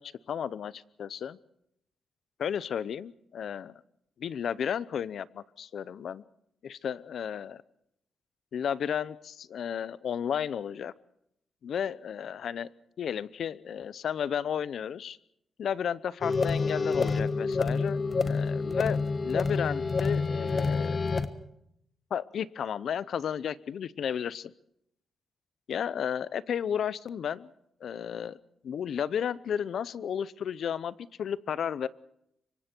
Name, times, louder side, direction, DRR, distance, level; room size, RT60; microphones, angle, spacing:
voice 1, 0.0-1.4 2.4-3.8 4.2-6.2 6.6-7.6 8.5-10.9 11.6-12.7 13.0-15.2 15.6-21.0 22.1-24.5 25.7-27.5 27.8-28.4 28.6-31.9, left 8 dB, 65° left, 18 dB, 0.7 m, -33 dB
sound 1, 16.2-21.3, left 4 dB, 30° left, 1.3 m, -28 dB
25.5 x 24.0 x 4.5 m, 0.76 s
cardioid pair, 130°, 0 cm